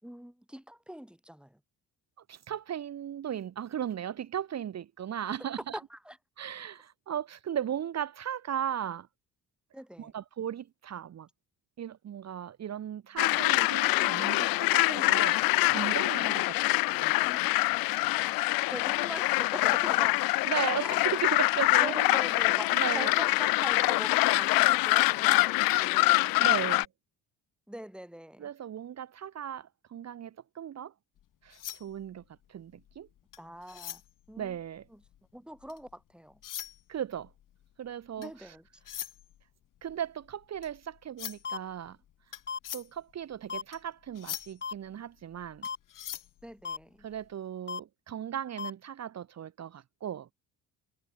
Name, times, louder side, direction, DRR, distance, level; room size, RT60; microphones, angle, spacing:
voice 1, 0.0-1.6 5.7-6.2 9.7-10.1 17.2-17.5 18.7-20.2 20.8-20.9 21.8-26.4 27.7-28.5 33.4-34.0 34.3-34.6 34.9-35.0 35.3-36.4 38.2-38.6 46.4-47.1, equal, 5° right, 5.2 m, -42 dB
voice 2, 2.3-5.8 6.4-9.1 10.0-11.3 11.8-17.3 20.4-22.2 22.7-23.1 26.4-26.9 28.4-30.9 31.4-32.2 32.5-33.1 34.4-34.8 36.9-37.3 37.8-38.5 39.8-42.0 42.7-45.7 47.0-50.3, right 9 dB, 50° right, 1.5 m, -37 dB
sound 1, 13.2-26.8, left 22 dB, 85° left, 0.9 m, -25 dB
sound 2, 31.2-35.9 36.3-47.3, left 11 dB, 65° left, 7.0 m, -44 dB
sound 3, 41.4-41.6 42.5-42.6 43.5-43.6 44.6-44.7 45.6-45.8 46.6-46.8 47.7-47.8 48.6-48.7, left 6 dB, 30° left, 2.0 m, -35 dB
supercardioid pair, 80°, 34 cm